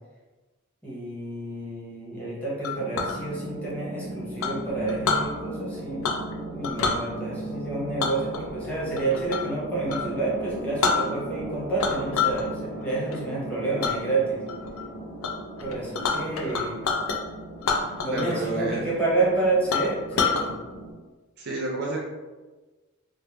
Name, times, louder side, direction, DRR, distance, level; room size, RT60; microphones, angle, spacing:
voice 1, 0.8-6.1 6.5-14.4 15.6-16.8 17.8-20.5, right 3 dB, 5° left, -7 dB, 0.9 m, -29 dB
Chink clink, 2.6-3.2 4.4-5.3 6.0-6.3 6.6-7.0 8.0-9.5 9.9-10.1 10.5-10.6 10.8-11.4 11.8-12.4 12.8-13.2 13.8-14.0 14.5-14.8 15.2-15.3 15.6-17.2 17.6-18.4 18.7-18.8 19.2-19.3 19.7-20.4, left 5 dB, 75° left, 0.4 m, -27 dB
sound 1, 2.7-20.9, right 2 dB, 40° left, 0.9 m, -38 dB
voice 2, 18.1-18.9 21.4-22.0, right 2 dB, 50° right, -2 dB, 0.5 m, -29 dB
3.5 x 2.0 x 3.3 m, 1.3 s
head